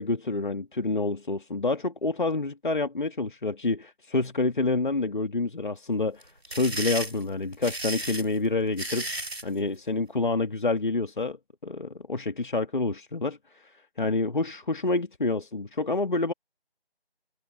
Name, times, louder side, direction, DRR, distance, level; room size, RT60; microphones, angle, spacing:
voice 1, 0.0-9.1 9.4-11.4 11.6-16.3, left 3 dB, 50° left, 2.0 m, -28 dB
sound 1, 6.2-9.5, right 1 dB, 75° right, 3.3 m, -34 dB
figure-of-eight pair, 165°, 31 cm